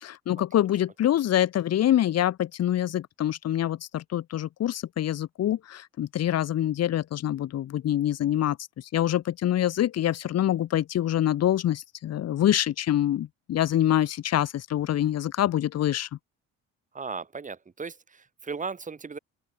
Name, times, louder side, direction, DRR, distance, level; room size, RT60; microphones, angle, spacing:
voice 1, 0.0-8.6 8.9-16.1, left 12 dB, 55° left, 2.4 m, -25 dB
voice 2, 16.9-19.2, right 5 dB, 25° right, 5.4 m, -36 dB
open air
cardioid pair, 130°, 30 cm